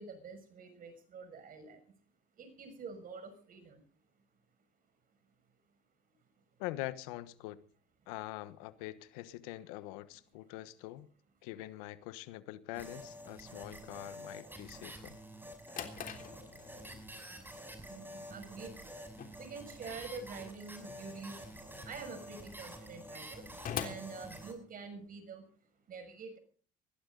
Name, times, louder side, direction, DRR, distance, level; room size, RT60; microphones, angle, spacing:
voice 1, 0.0-1.8 2.4-3.8 17.9-18.8 19.4-21.4 21.8-23.5 23.8-25.5 25.9-26.4, right 5 dB, 50° right, 6.1 m, -47 dB
voice 2, 6.6-7.6 8.1-11.1 11.4-15.2, left 16 dB, 90° left, 1.2 m, -44 dB
sound 1, 12.7-24.5, equal, 10° right, 6.0 m, -49 dB
Drawer open or close, 15.3-25.1, left 7 dB, 50° left, 3.4 m, -47 dB
21.5 x 15.5 x 3.9 m
supercardioid pair, 80°, 18 cm